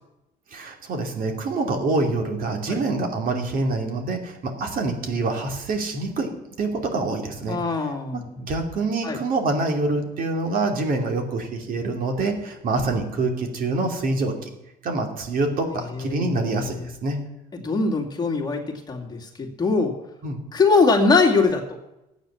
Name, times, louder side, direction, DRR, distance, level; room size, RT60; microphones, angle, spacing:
voice 1, 0.5-6.3 6.6-7.6 8.1-14.5 14.8-17.2 20.2-20.4, right 3 dB, 55° right, 3 dB, 2.8 m, -26 dB
voice 2, 7.5-8.3 9.0-9.2 15.9-16.9 17.5-20.0 20.5-21.8, left 4 dB, 25° left, 0 dB, 2.4 m, -22 dB
14.0 x 9.0 x 7.1 m, 0.94 s
cardioid pair, 110°, 17 cm